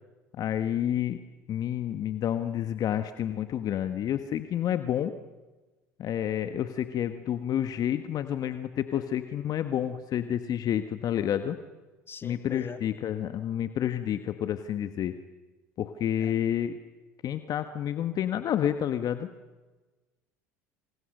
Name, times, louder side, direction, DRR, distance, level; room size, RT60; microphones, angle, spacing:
voice 1, 0.4-1.2 1.5-5.2 6.0-11.6 12.2-15.1 15.8-16.8 17.2-19.3, left 10 dB, 50° left, 10 dB, 1.4 m, -29 dB
voice 2, 12.1-12.8 16.2-16.4, left 5 dB, 25° left, 10 dB, 2.1 m, -42 dB
28.5 x 27.5 x 6.7 m, 1.2 s
hypercardioid pair, 75°, 9 cm